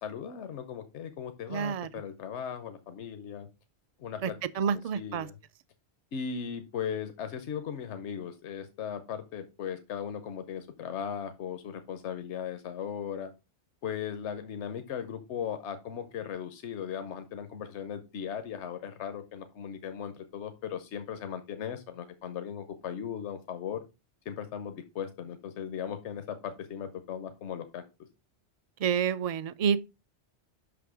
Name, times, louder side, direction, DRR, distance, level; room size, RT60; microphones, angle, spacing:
voice 1, 0.0-3.5 4.0-4.3 4.9-5.3 6.1-13.3 13.8-23.8 24.3-27.8, left 8 dB, 80° left, 1.1 m, -37 dB
voice 2, 1.5-1.9 4.2-5.3 28.8-29.8, right 7 dB, 60° right, 0.4 m, -29 dB
6.0 x 5.9 x 4.8 m
omnidirectional pair, 1.1 m